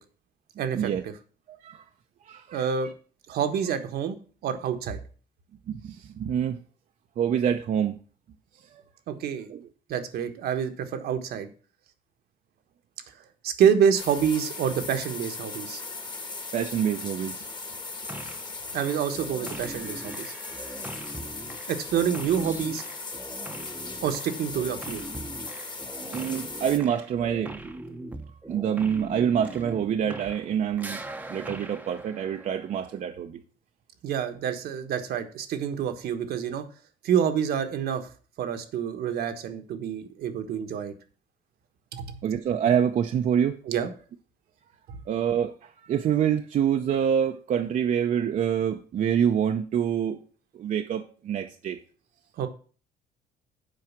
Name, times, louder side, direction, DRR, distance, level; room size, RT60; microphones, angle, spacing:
voice 1, 0.6-1.1 2.5-2.9 3.3-4.2 4.4-5.0 9.1-9.5 9.9-11.5 13.4-15.8 18.7-20.3 21.7-22.8 24.0-25.0 34.0-36.7 37.0-38.1 38.4-40.9 41.9-42.2 43.7-43.9 44.9-45.0 52.4-52.5, right 8 dB, 70° right, 1.3 m, -27 dB
voice 2, 1.5-1.8 2.3-2.7 5.7-6.6 7.2-8.0 8.7-8.8 9.5-9.6 16.5-17.4 26.0-27.6 28.5-31.0 31.3-33.4 42.2-43.6 45.1-50.2 50.5-51.8, right 8 dB, 50° right, 0.8 m, -26 dB
sound 1, 13.9-26.8, left 3 dB, 25° left, 1.6 m, -38 dB
sound 2, 18.1-18.5 18.8-30.5 30.8-33.0, right 2 dB, 10° right, 0.9 m, -41 dB
7.7 x 4.8 x 7.3 m
cardioid pair, 110°, 17 cm